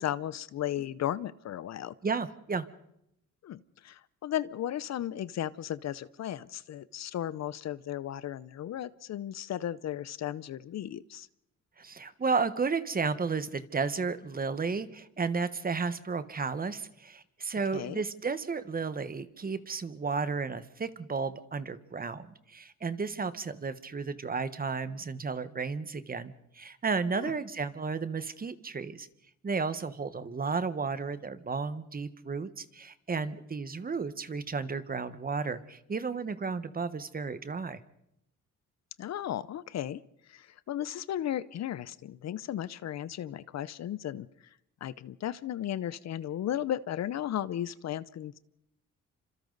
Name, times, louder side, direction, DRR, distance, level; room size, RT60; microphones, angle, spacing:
voice 1, 0.0-1.9 3.4-11.3 17.7-18.0 27.2-27.3 39.0-40.0 40.3-44.3 44.8-48.4, left 11 dB, 60° left, 17 dB, 0.7 m, -35 dB
voice 2, 2.0-2.6 11.8-29.1 29.4-37.8, right 4 dB, 30° right, 12 dB, 1.3 m, -33 dB
28.5 x 26.0 x 4.0 m, 0.80 s
cardioid pair, 90°, 30 cm